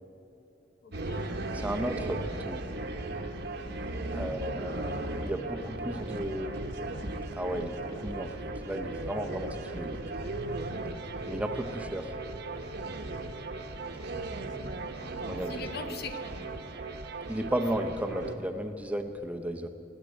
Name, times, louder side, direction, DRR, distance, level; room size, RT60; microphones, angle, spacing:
voice 1, 0.8-1.8 4.1-4.3 15.4-16.5, left 4 dB, 60° left, 8 dB, 1.0 m, -43 dB
sound 1, 0.9-18.4, right 2 dB, 65° right, 1.1 m, -37 dB
voice 2, 1.6-2.6 4.1-6.6 7.4-10.0 11.3-12.1 15.2-15.5 17.3-19.7, right 1 dB, 10° right, 5 dB, 0.6 m, -34 dB
19.5 x 8.2 x 9.1 m, 2.8 s
head